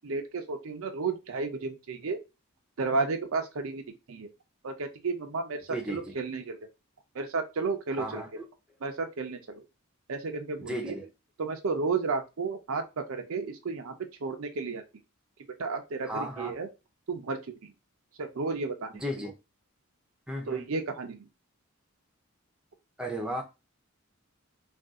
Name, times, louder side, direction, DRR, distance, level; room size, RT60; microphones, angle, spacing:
voice 1, 0.0-2.2 2.8-4.3 4.6-6.6 7.1-8.4 8.8-9.6 10.1-11.0 11.4-14.0 14.2-14.8 15.6-16.7 17.1-17.7 18.2-18.9 20.5-21.3, right 4 dB, 75° right, 6 dB, 0.6 m, -32 dB
voice 2, 5.7-6.2 8.0-8.4 10.6-11.1 16.0-16.5 18.9-19.3 20.3-20.7 23.0-23.4, equal, 5° right, 1 dB, 0.6 m, -35 dB
2.6 x 2.4 x 3.5 m, 0.26 s
head